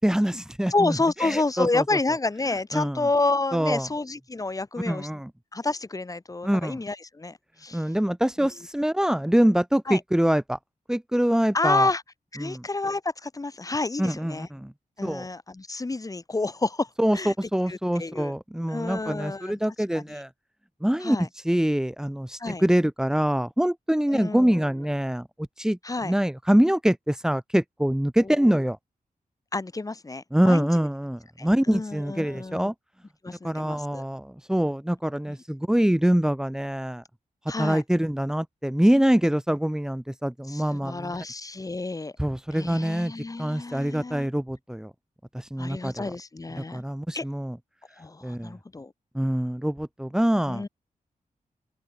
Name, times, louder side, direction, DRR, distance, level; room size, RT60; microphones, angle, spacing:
voice 1, 0.0-1.8 2.7-3.1 3.5-3.9 4.8-5.3 6.4-6.8 7.7-10.6 10.9-11.9 12.4-12.6 14.0-14.7 15.0-15.3 17.0-20.3 20.8-28.8 30.3-32.7 33.4-37.0 37.6-41.1 42.2-43.1 43.4-44.9 45.3-46.1 46.6-47.6 48.2-48.5 49.1-50.7, equal, 5° right, 4.9 m, -24 dB
voice 2, 0.7-5.1 5.5-7.8 9.9-10.0 11.5-12.0 12.3-14.5 15.0-17.3 17.7-18.3 18.7-19.6 19.9-20.2 21.0-21.3 22.4-22.6 24.1-24.6 25.8-26.1 28.2-28.5 29.5-30.7 31.4-32.7 33.2-34.0 35.3-35.4 37.5-37.8 40.5-42.1 42.5-44.3 45.6-46.8 47.1-47.2 48.0-48.9 50.5-50.7, left 3 dB, 25° left, 7.5 m, -29 dB
open air
wide cardioid pair, 165°, 15 cm